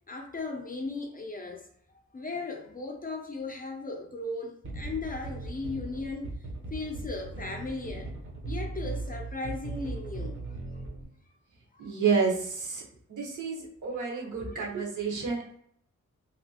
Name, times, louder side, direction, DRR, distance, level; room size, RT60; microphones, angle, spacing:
voice 1, 0.1-1.7 2.1-6.3 6.7-8.1 8.5-10.4 11.8-11.9 13.9-14.7, left 3 dB, 30° left, 2 dB, 0.5 m, -37 dB
sound 1, 4.6-11.0, right 2 dB, 40° right, 0.7 m, -38 dB
voice 2, 11.8-12.8 13.1-15.6, right 5 dB, 75° right, -2 dB, 1.1 m, -30 dB
2.9 x 2.8 x 2.8 m, 0.66 s
wide cardioid pair, 160°, 31 cm